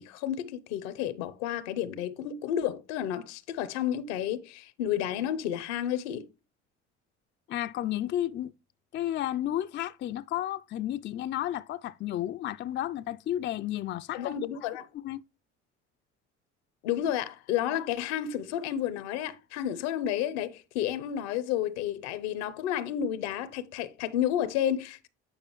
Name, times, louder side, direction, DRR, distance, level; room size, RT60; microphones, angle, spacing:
voice 1, 0.0-6.3 14.1-14.9 16.8-25.1, left 10 dB, 80° left, 0.8 m, -31 dB
voice 2, 7.5-8.5 8.9-14.3 14.9-15.2, left 12 dB, 35° left, 0.4 m, -32 dB
9.0 x 5.0 x 3.0 m
hypercardioid pair, 55°, 34 cm